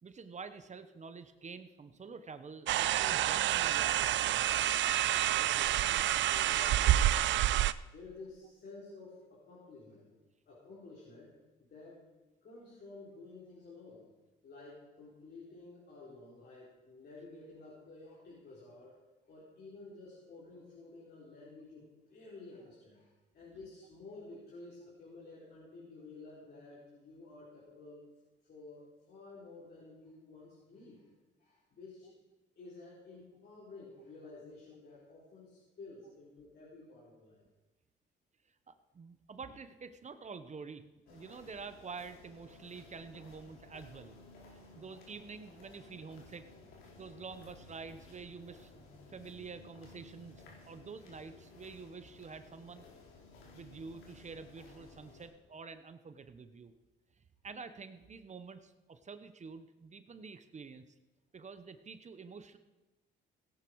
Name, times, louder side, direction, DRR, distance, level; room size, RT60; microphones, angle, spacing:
voice 1, 0.0-4.5 38.7-44.2 44.5-46.4 47.0-48.7 49.1-52.8 53.5-56.7 57.4-60.8 61.3-62.6, right 5 dB, 35° right, 10 dB, 1.0 m, -48 dB
sound 1, 2.7-7.7, right 13 dB, 70° right, 0.5 m, -28 dB
voice 2, 5.1-7.5 7.8-10.2 10.5-12.0 12.4-14.1 14.4-19.0 19.3-28.1 28.5-31.1 31.4-32.2 32.6-37.4, left 3 dB, 55° left, -7 dB, 4.6 m, -52 dB
sound 2, 41.1-55.3, left 2 dB, 90° left, 3.6 m, -56 dB
17.5 x 10.5 x 4.8 m, 1.1 s
cardioid pair, 90°, 20 cm